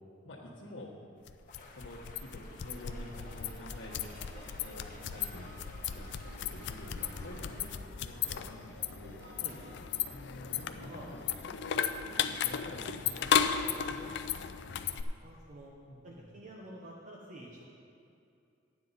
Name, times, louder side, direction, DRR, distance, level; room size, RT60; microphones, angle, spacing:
voice 1, 0.2-1.1 1.6-4.2 4.4-5.5 5.9-9.2 10.1-11.8 12.0-15.1 15.9-16.3, left 1 dB, 80° left, -6 dB, 1.3 m, -49 dB
sound 1, 1.3-15.0, left 8 dB, 60° left, 0.4 m, -35 dB
sound 2, 1.5-7.7, left 2 dB, 45° left, 1.6 m, -54 dB
sound 3, 2.7-12.0, equal, 65° right, 2.0 m, -54 dB
voice 2, 10.8-11.1 12.2-12.5 15.2-15.7 16.0-17.6, right 1 dB, 40° right, -3 dB, 1.0 m, -49 dB
11.5 x 9.6 x 4.1 m, 2.5 s
head